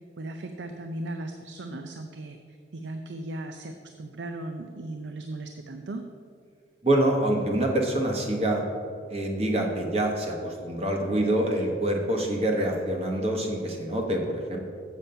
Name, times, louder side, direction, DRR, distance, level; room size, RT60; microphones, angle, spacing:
voice 1, 0.0-6.0, right 2 dB, 80° right, 6 dB, 0.5 m, -37 dB
voice 2, 6.8-8.6 9.1-14.6, right 1 dB, 35° right, 1 dB, 1.2 m, -26 dB
7.3 x 7.2 x 5.4 m, 2.3 s
head